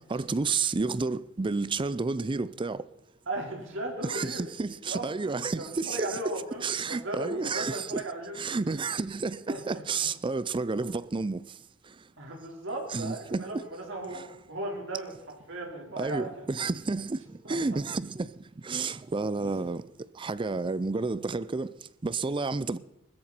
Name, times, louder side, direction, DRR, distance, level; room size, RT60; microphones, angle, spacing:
voice 1, 0.1-2.9 4.0-6.2 6.6-8.0 8.4-11.6 11.8-12.0 12.9-13.6 14.1-14.2 16.0-19.8 20.1-22.8, right 4 dB, 25° right, 0.4 m, -31 dB
voice 2, 3.3-4.5 4.9-8.7 9.5-9.8 10.7-10.8 12.2-14.2 14.5-15.1 15.5-16.5 17.4-17.8 19.4-19.5, right 2 dB, 65° right, 4.5 m, -37 dB
19.5 x 14.0 x 4.4 m
head